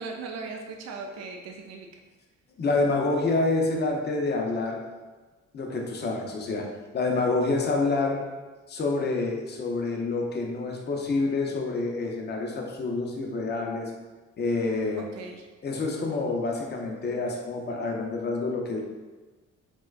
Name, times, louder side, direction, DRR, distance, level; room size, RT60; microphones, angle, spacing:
voice 1, 0.0-1.9 15.0-15.5, right 4 dB, 60° right, 2 dB, 0.4 m, -38 dB
voice 2, 2.6-4.8 5.5-6.7 6.9-8.2 8.7-13.9 14.4-15.0 15.6-18.8, left 3 dB, 35° left, 0 dB, 0.6 m, -27 dB
4.3 x 2.2 x 2.4 m, 1.2 s
cardioid pair, 90°, 30 cm